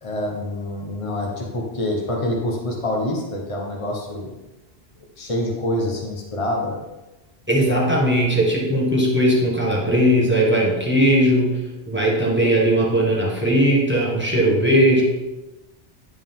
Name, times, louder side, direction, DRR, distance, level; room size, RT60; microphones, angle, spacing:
voice 1, 0.0-4.3 5.2-6.8, left 1 dB, 30° left, -1 dB, 1.3 m, -26 dB
voice 2, 7.5-11.6 11.9-15.0, equal, 10° right, -3 dB, 1.6 m, -18 dB
10.5 x 5.0 x 3.7 m, 1.0 s
omnidirectional pair, 1.2 m